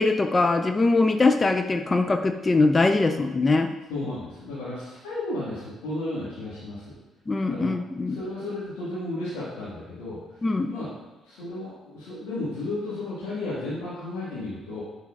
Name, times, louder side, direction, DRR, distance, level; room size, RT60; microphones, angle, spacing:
voice 1, 0.0-3.7 7.3-8.2 10.4-10.7, left 3 dB, 30° left, 7 dB, 0.4 m, -22 dB
voice 2, 3.9-7.0 7.5-7.7 8.1-10.2 10.7-10.9 11.2-14.8, left 2 dB, 70° left, -11 dB, 1.7 m, -33 dB
9.4 x 4.0 x 2.5 m, 1.1 s
figure-of-eight pair, 45°, 0 cm